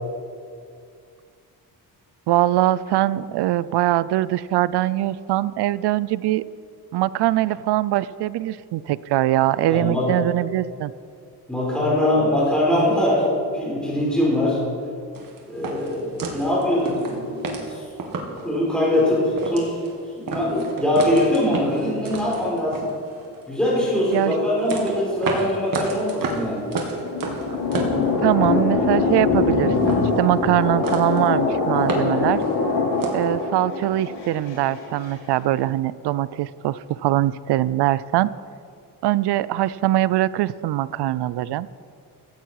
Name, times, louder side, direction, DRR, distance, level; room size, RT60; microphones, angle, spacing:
voice 1, 2.3-6.4 6.9-10.9 24.1-24.3 28.2-32.4 33.1-38.3 39.0-41.7, right 14 dB, 80° right, 18 dB, 0.6 m, -22 dB
voice 2, 9.6-10.1 11.5-14.6 15.5-17.9 18.4-19.8 20.2-22.9 23.5-26.7, left 1 dB, ahead, -5 dB, 4.3 m, -22 dB
sound 1, 15.2-18.5 18.9-19.0 19.3-20.0 20.3-23.4 23.9-28.7 28.9-29.5 29.8-30.6 30.8-31.3 31.6-33.3, right 4 dB, 55° right, 2.4 m, -31 dB
sound 2, 26.6-35.1, left 4 dB, 80° left, 4.1 m, -23 dB
15.5 x 15.0 x 4.8 m, 2.3 s
cardioid pair, 150°, 40 cm